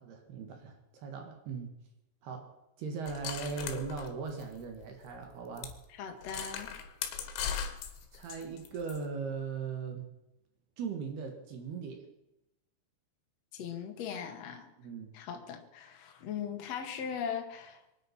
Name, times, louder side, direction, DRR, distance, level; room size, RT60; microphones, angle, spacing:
voice 1, 0.0-1.7 2.2-2.5 2.8-5.7 8.1-10.1 10.8-12.1 14.8-15.1, right 5 dB, 65° right, 4 dB, 3.6 m, -39 dB
sound 1, 3.1-4.9 5.1-5.2 5.6-5.8 6.2-9.0, left 8 dB, 80° left, 3.9 m, -39 dB
voice 2, 6.0-6.7 13.5-14.7 15.1-17.8, left 7 dB, 50° left, 4 dB, 2.2 m, -39 dB
24.5 x 9.9 x 5.9 m, 0.93 s
omnidirectional pair, 5.3 m